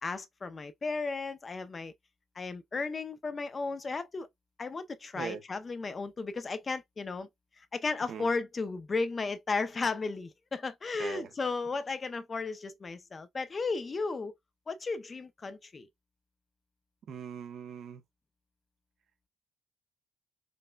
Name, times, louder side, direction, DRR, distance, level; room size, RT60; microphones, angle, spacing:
voice 1, 0.0-1.9 2.4-4.3 4.6-7.3 7.6-14.3 14.7-15.9, left 4 dB, 35° left, 0.6 m, -34 dB
voice 2, 17.1-18.0, right 7 dB, 65° right, 0.8 m, -40 dB
5.1 x 2.2 x 2.2 m
cardioid pair, 90°, 0 cm